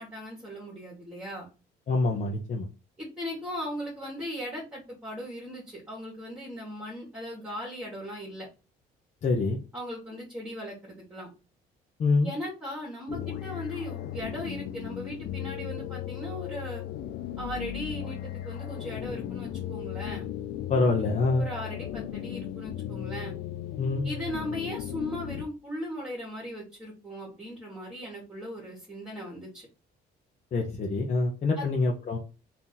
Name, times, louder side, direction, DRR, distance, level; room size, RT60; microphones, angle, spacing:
voice 1, 0.0-1.5 3.0-8.5 9.7-11.3 12.2-16.8 17.4-20.3 21.4-23.3 24.0-29.7 31.6-31.8, equal, 5° right, -4 dB, 2.0 m, -38 dB
voice 2, 1.9-2.7 9.2-9.6 12.0-12.3 20.7-21.5 23.8-24.1 30.5-32.2, left 3 dB, 45° left, 0 dB, 0.9 m, -25 dB
sound 1, 13.1-25.5, left 11 dB, 70° left, 0.5 m, -36 dB
3.6 x 2.9 x 3.9 m, 0.32 s
cardioid pair, 110°, 17 cm